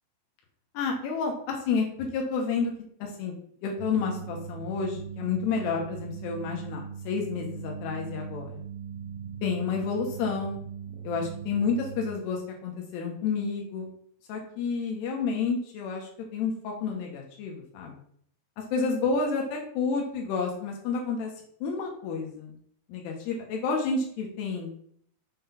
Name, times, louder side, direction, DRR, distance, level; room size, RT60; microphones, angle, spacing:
voice 1, 0.7-2.7 3.0-3.3 3.6-8.5 9.4-10.7 11.0-13.9 14.3-17.9 18.6-21.3 21.6-22.5 22.9-24.7, left 5 dB, 80° left, 0 dB, 3.1 m, -30 dB
sound 1, 3.8-12.1, right 7 dB, 80° right, 2.2 m, -39 dB
7.0 x 3.8 x 5.6 m, 0.64 s
omnidirectional pair, 4.7 m